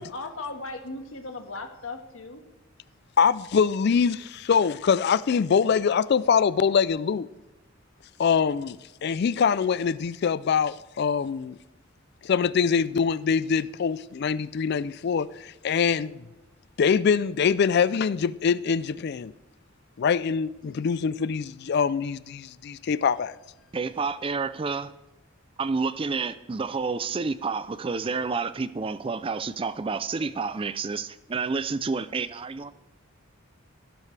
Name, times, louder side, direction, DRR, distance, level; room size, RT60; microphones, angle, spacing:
voice 1, 0.0-2.4, left 3 dB, 85° left, 1.7 m, -37 dB
voice 2, 3.2-7.3 8.2-11.6 12.2-16.2 16.8-19.3 20.0-23.3, left 6 dB, 55° left, 0.4 m, -24 dB
voice 3, 23.7-24.9 25.6-32.7, right 4 dB, 25° right, 0.4 m, -29 dB
16.5 x 12.0 x 3.3 m
head